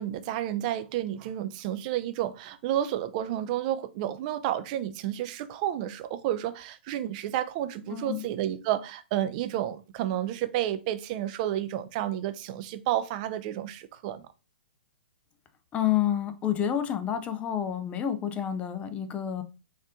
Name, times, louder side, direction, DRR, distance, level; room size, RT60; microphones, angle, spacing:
voice 1, 0.0-14.3, right 12 dB, 40° right, 0.4 m, -31 dB
voice 2, 7.9-8.2 15.7-19.4, left 10 dB, 20° left, 0.5 m, -29 dB
4.1 x 2.5 x 3.6 m
hypercardioid pair, 130°, 6 cm